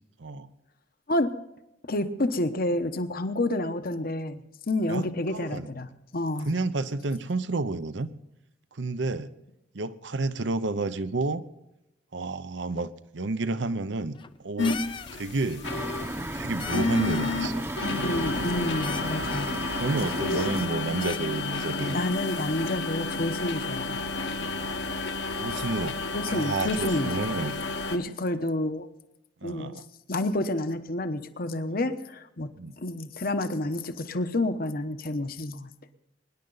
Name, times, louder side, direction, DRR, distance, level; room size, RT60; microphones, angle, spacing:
voice 1, 1.9-5.9 6.1-6.5 18.0-19.5 20.3-20.5 21.9-24.0 25.5-25.7 26.1-27.2 27.9-28.9 29.4-29.8 30.1-35.7, left 1 dB, 50° left, 9 dB, 1.0 m, -29 dB
voice 2, 4.9-5.7 6.5-8.1 8.7-9.3 9.7-11.4 12.1-14.2 14.4-14.8 15.1-15.7 16.3-17.6 17.9-18.2 19.3-19.5 19.8-22.1 25.4-26.0 26.3-27.5 29.4-29.8 32.6-32.7, right 3 dB, 70° right, 13 dB, 0.8 m, -30 dB
sound 1, 14.0-14.4 14.6-15.2 15.5-15.9 16.2-16.3 16.6-17.4 17.7-18.5 18.8-19.7 20.1-20.7 21.0-21.9, left 6 dB, 25° left, 0.5 m, -41 dB
sound 2, 14.6-28.0, left 3 dB, 65° left, 1.4 m, -31 dB
sound 3, 15.6-20.7, right 1 dB, 15° right, 0.8 m, -34 dB
23.5 x 11.0 x 4.0 m, 0.89 s
head